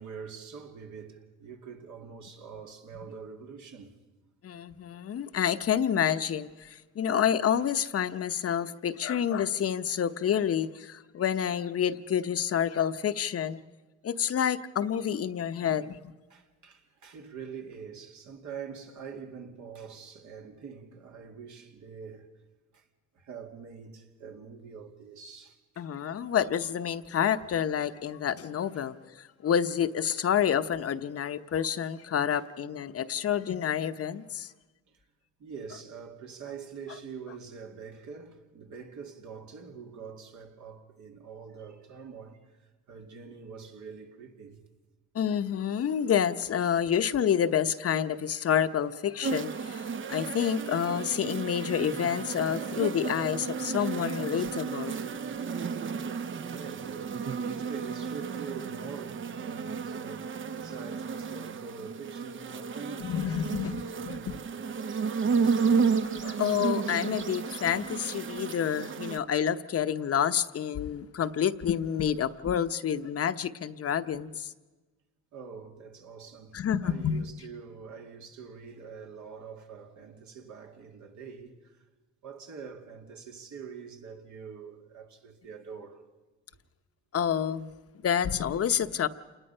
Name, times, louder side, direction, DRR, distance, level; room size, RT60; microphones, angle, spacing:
voice 1, 0.0-4.0 16.3-22.3 22.7-22.9 23.1-25.8 27.0-27.1 28.7-28.8 34.9-35.0 35.4-44.6 52.6-52.8 56.5-65.7 68.3-68.4 75.3-81.9 82.2-86.0, right 6 dB, 70° right, 2.4 m, -45 dB
voice 2, 4.4-13.6 14.0-16.0 25.8-34.5 45.1-55.0 63.0-64.2 66.0-74.5 76.5-77.2 87.1-87.7 88.0-89.1, left 8 dB, 50° left, 0.8 m, -28 dB
sound 1, 49.2-69.2, right 5 dB, 40° right, 0.7 m, -32 dB
28.0 x 20.0 x 5.5 m
cardioid pair, 90°, 30 cm